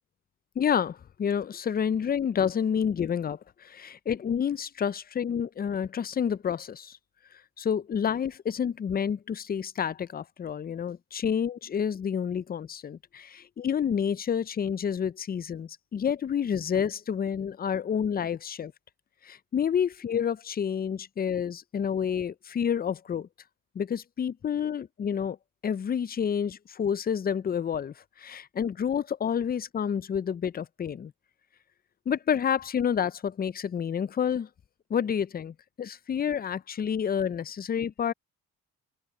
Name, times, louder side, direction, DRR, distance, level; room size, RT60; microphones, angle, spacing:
voice 1, 0.6-7.0 7.6-18.7 19.2-23.3 23.8-25.4 25.6-31.1 32.1-34.5 34.9-38.1, left 8 dB, 30° left, 0.4 m, -29 dB
open air
cardioid pair, 95°, 34 cm